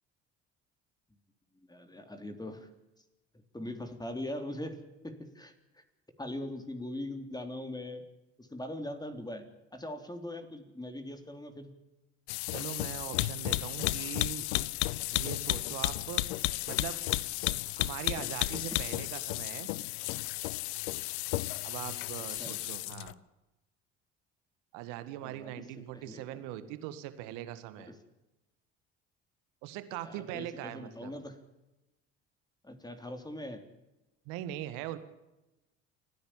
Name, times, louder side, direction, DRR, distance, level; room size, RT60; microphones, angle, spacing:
voice 1, 1.7-2.7 3.5-5.8 6.2-8.0 8.4-9.5 9.7-11.7 22.4-22.6 25.2-26.4 27.9-28.0 30.0-31.4 32.6-33.7, left 1 dB, 10° left, 6 dB, 3.7 m, -41 dB
sound 1, 12.3-23.1, left 19 dB, 80° left, 0.7 m, -33 dB
voice 2, 12.5-14.5 15.1-16.2 16.7-17.0 17.8-19.7 21.6-23.2 24.7-28.0 29.6-31.1 34.3-35.0, right 13 dB, 75° right, 11 dB, 1.9 m, -41 dB
29.0 x 10.5 x 9.0 m, 0.99 s
hypercardioid pair, 65°, 32 cm